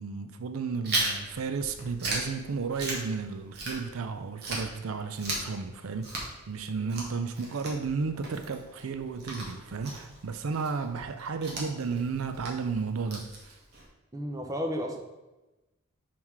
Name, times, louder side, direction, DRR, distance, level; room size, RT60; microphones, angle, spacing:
voice 1, 0.0-13.6, right 5 dB, 75° right, 9 dB, 0.5 m, -33 dB
Chewing mastication, 0.8-4.1 4.4-13.9, right 2 dB, 50° right, 1.6 m, -37 dB
voice 2, 14.1-15.0, equal, 15° right, 2 dB, 0.8 m, -33 dB
5.6 x 4.7 x 4.7 m, 1.1 s
head